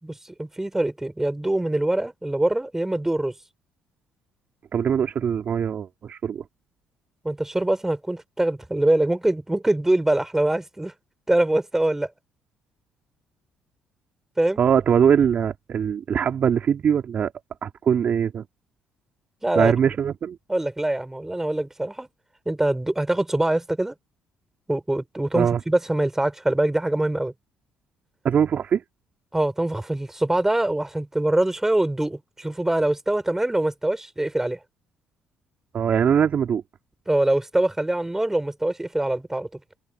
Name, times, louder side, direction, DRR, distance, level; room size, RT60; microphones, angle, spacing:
voice 1, 0.0-3.3 7.2-10.9 11.3-12.1 14.4-14.6 19.4-19.7 20.5-22.1 22.4-23.9 24.7-27.3 29.3-34.6 37.1-39.5, right 1 dB, 10° right, 4.7 m, -23 dB
voice 2, 4.7-6.4 14.6-17.3 17.6-18.4 19.6-20.4 25.3-25.6 28.2-28.8 35.7-36.6, right 8 dB, 50° right, 2.9 m, -22 dB
hypercardioid pair, 50°, 3 cm